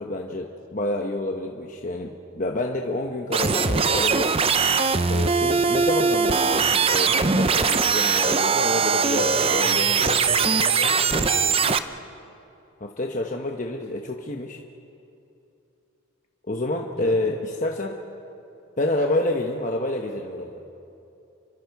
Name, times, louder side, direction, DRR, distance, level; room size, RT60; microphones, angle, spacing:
voice 1, 0.0-4.3 5.1-10.2 12.8-14.6 16.5-18.0 18.8-20.6, left 1 dB, 40° left, 1 dB, 1.1 m, -28 dB
sound 1, 3.3-11.8, right 5 dB, 25° right, 0.6 m, -21 dB
voice 2, 9.2-11.8 16.9-17.3, left 1 dB, 70° left, 2 dB, 3.8 m, -35 dB
30.0 x 24.0 x 4.8 m, 2.8 s
head